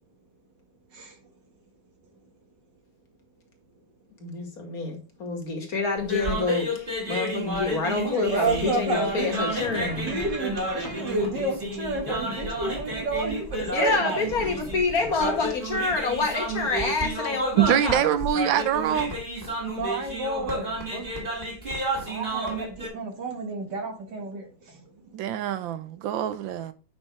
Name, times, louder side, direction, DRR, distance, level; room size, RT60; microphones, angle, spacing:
voice 1, 4.2-10.1 13.7-18.1, left 3 dB, 50° left, 2.2 m, -27 dB
sound 1, 6.0-22.9, right 1 dB, 25° right, 2.4 m, -31 dB
voice 2, 8.1-14.3 19.7-21.2 22.1-24.9, right 2 dB, 65° right, 2.2 m, -30 dB
sound 2, 9.5-17.0 17.3-17.4 17.6-17.9 18.4-18.9, left 2 dB, 85° left, 2.5 m, -45 dB
voice 3, 17.6-19.1 25.1-26.7, right 10 dB, 80° right, 1.5 m, -24 dB
9.1 x 5.7 x 3.2 m
omnidirectional pair, 2.1 m